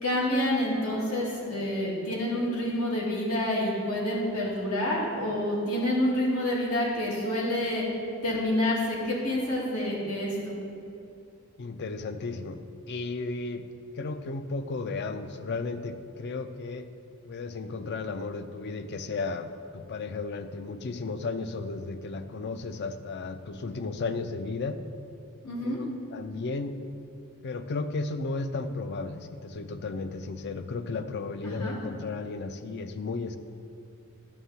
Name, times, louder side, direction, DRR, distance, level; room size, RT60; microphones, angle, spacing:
voice 1, 0.0-7.9 8.2-10.6 25.4-25.8 31.4-31.7, left 1 dB, 85° left, -5 dB, 2.0 m, -28 dB
voice 2, 11.6-12.6 12.9-13.7 14.0-16.8 17.3-24.8 25.6-26.8 27.4-33.4, left 3 dB, 50° left, 10 dB, 0.4 m, -34 dB
11.0 x 3.7 x 7.0 m, 2.7 s
head